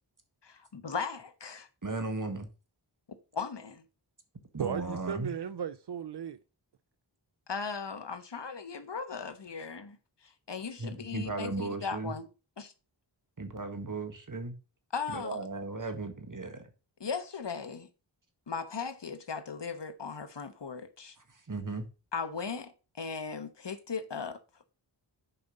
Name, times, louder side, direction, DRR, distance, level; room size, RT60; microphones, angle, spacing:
voice 1, 0.4-1.7 3.3-3.8 7.5-10.0 10.2-12.3 12.6-12.7 14.9-15.4 17.0-17.9 18.5-21.2 22.1-24.4, left 5 dB, 60° left, 1.2 m, -37 dB
voice 2, 1.8-2.5 4.5-5.3 10.8-12.1 13.4-14.5 15.1-16.7 21.5-21.8, right 3 dB, 40° right, 1.7 m, -36 dB
voice 3, 4.6-6.4, right 8 dB, 60° right, 0.6 m, -35 dB
6.8 x 5.3 x 5.3 m
wide cardioid pair, 55°, 47 cm